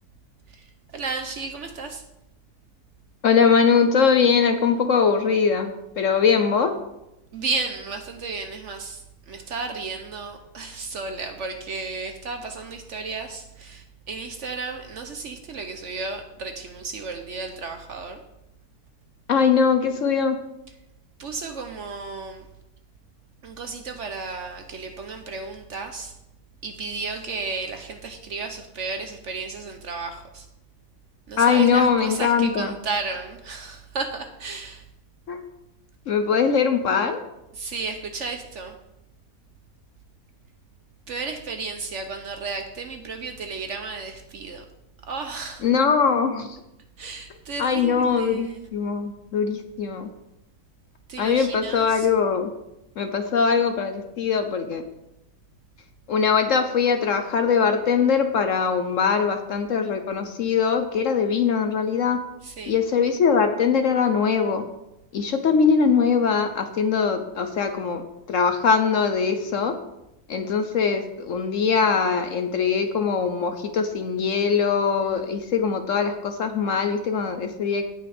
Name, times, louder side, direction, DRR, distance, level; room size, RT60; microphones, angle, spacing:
voice 1, 0.5-2.0 7.3-18.2 21.2-22.5 23.4-26.1 26.6-30.5 31.3-34.8 37.5-38.8 41.1-44.6 45.1-45.7 47.0-48.7 51.1-52.1 62.4-62.7 75.1-75.2, right 4 dB, 55° right, 6 dB, 1.0 m, -33 dB
voice 2, 3.2-6.8 19.3-20.4 31.4-32.7 35.3-35.4 36.1-37.2 45.6-46.6 47.6-50.1 51.2-52.5 53.0-54.8 56.1-62.2 62.7-64.6 65.1-68.0 68.3-69.8 70.3-77.8, left 6 dB, 60° left, 7 dB, 0.9 m, -21 dB
17.0 x 5.9 x 3.5 m, 0.89 s
omnidirectional pair, 1.7 m